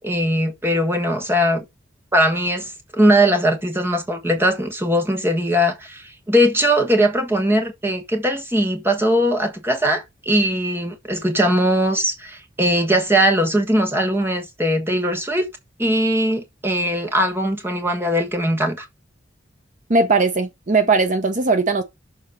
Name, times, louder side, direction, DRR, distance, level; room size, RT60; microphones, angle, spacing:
voice 1, 0.0-1.6 2.1-15.5 15.8-18.9, equal, 10° right, 1.4 m, -20 dB
voice 2, 19.9-21.8, right 3 dB, 40° right, 0.8 m, -18 dB
6.8 x 3.8 x 5.7 m
head